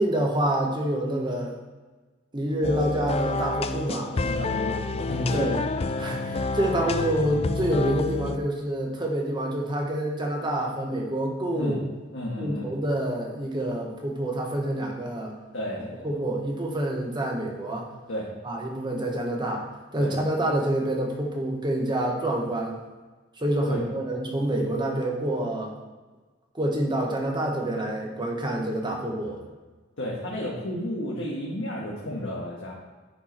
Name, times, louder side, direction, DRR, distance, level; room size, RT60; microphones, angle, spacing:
voice 1, 0.0-1.6 2.3-4.1 5.3-5.6 6.0-11.8 12.4-15.3 16.0-17.9 18.4-19.6 19.9-22.8 23.4-25.7 26.5-29.4, right 1 dB, 25° right, 0 dB, 1.4 m, -27 dB
sound 1, 2.6-8.4, left 3 dB, 30° left, 0.4 m, -29 dB
voice 2, 4.1-5.6 11.5-11.8 12.1-12.7 15.5-16.1 18.1-18.3 20.0-20.2 23.7-23.8 30.0-32.7, left 1 dB, 80° left, -4 dB, 1.5 m, -32 dB
10.0 x 4.7 x 4.5 m, 1.3 s
head